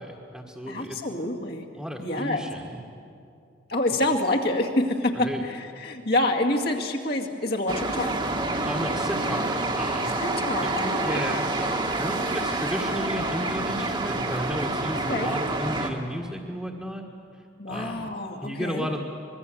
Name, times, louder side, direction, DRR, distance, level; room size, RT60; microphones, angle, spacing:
voice 1, 0.0-1.0 1.7-2.8 5.1-5.5 8.6-10.2 10.6-10.7 11.0-17.0 17.3-18.1 18.4-19.0, equal, ahead, -1 dB, 1.7 m, -33 dB
voice 2, 0.7-1.7 2.0-2.5 3.7-8.2 10.2-11.3 15.1-15.3 17.6-18.9, left 1 dB, 50° left, 1 dB, 2.3 m, -27 dB
sound 1, 7.7-15.9, right 2 dB, 25° right, 1.7 m, -28 dB
25.0 x 22.0 x 7.9 m, 2.5 s
head